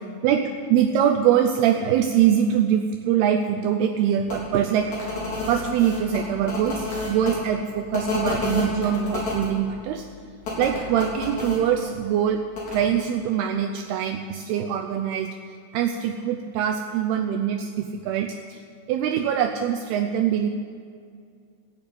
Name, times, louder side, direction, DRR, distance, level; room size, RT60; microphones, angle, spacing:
voice 1, 0.2-4.9 5.5-10.1 10.6-12.4 12.7-15.3 15.7-18.6 18.9-20.5, right 9 dB, 85° right, 4 dB, 2.3 m, -23 dB
sound 1, 4.3-4.4 4.9-7.3 7.9-9.5 10.4-11.6 12.5-12.8, left 3 dB, 45° left, 4.3 m, -29 dB
17.0 x 6.7 x 8.7 m, 2.2 s
omnidirectional pair, 5.3 m